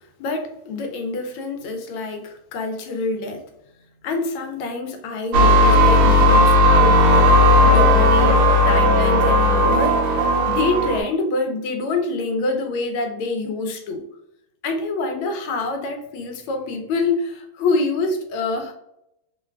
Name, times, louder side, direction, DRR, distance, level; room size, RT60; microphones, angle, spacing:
voice 1, 0.2-3.4 4.0-7.3 7.6-10.2 10.5-14.0 14.6-18.7, left 3 dB, 80° left, 5 dB, 1.4 m, -26 dB
sound 1, 5.3-11.0, left 1 dB, 85° right, 1.5 m, -15 dB
3.7 x 2.3 x 2.2 m, 0.81 s
omnidirectional pair, 2.3 m